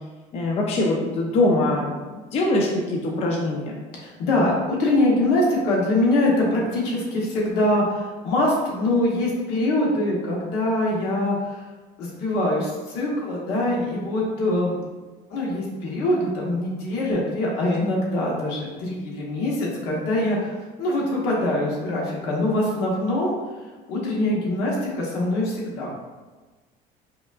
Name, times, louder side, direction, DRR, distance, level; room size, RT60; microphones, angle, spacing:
voice 1, 0.3-3.8, left 2 dB, 40° left, -1 dB, 0.5 m, -23 dB
voice 2, 3.9-11.6 12.0-14.8 15.3-23.3 23.9-25.9, left 1 dB, 80° left, -3 dB, 1.2 m, -23 dB
5.1 x 2.4 x 2.4 m, 1.3 s
cardioid pair, 120°, 17 cm